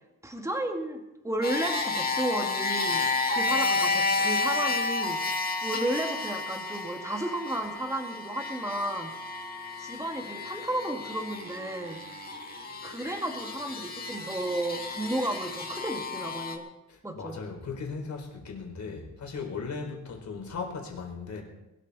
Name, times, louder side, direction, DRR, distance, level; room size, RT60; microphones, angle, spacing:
voice 1, 0.2-3.0 3.3-9.1 9.8-12.0 12.8-16.7 17.0-17.4, right 1 dB, 10° right, 3 dB, 2.0 m, -33 dB
sound 1, 1.4-16.6, left 3 dB, 25° left, 2.0 m, -31 dB
voice 2, 16.9-21.4, left 4 dB, 55° left, 2 dB, 4.2 m, -37 dB
21.5 x 13.0 x 4.2 m, 0.95 s
wide cardioid pair, 145°, 34 cm